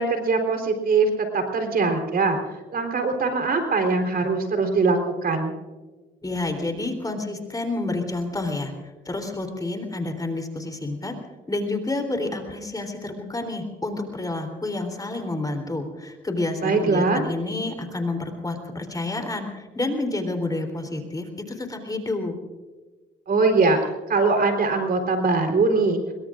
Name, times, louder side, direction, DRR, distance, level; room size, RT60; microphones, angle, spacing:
voice 1, 0.0-2.4 2.7-5.5 16.6-17.2 23.3-26.0, right 3 dB, 50° right, 4 dB, 3.9 m, -22 dB
voice 2, 6.2-11.1 11.5-22.3, left 2 dB, 20° left, 4 dB, 3.6 m, -29 dB
25.5 x 22.5 x 2.6 m, 1.3 s
cardioid pair, 90°, 20 cm